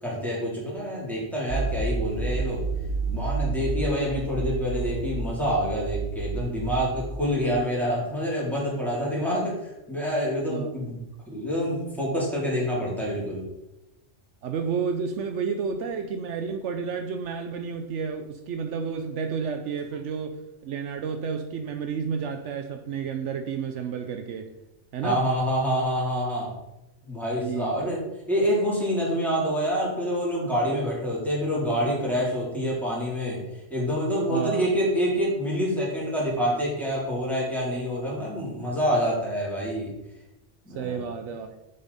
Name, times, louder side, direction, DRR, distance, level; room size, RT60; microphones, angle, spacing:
voice 1, 0.0-2.6 3.1-11.0 11.3-13.4 25.0-26.5 27.0-28.0 28.3-33.4 33.7-39.9 40.6-41.0, equal, ahead, -6 dB, 3.3 m, -27 dB
sound 1, 1.5-7.4, right 3 dB, 55° right, 1.7 m, -30 dB
voice 2, 14.4-24.5 24.9-25.2 27.4-27.9 34.3-34.7 40.7-41.5, right 6 dB, 75° right, 7 dB, 1.0 m, -31 dB
7.8 x 7.1 x 4.1 m, 0.93 s
omnidirectional pair, 1.3 m